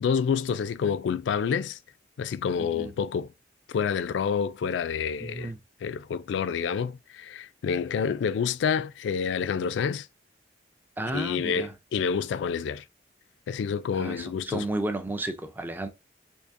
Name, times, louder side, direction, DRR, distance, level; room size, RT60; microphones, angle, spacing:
voice 1, 0.0-1.8 2.2-3.3 3.7-5.5 5.8-10.1 11.1-12.8 13.5-14.7, left 6 dB, 80° left, 0.3 m, -28 dB
voice 2, 2.6-2.9 5.2-5.6 11.0-11.7 14.0-15.9, right 1 dB, 10° right, 0.4 m, -33 dB
3.5 x 3.2 x 2.5 m
head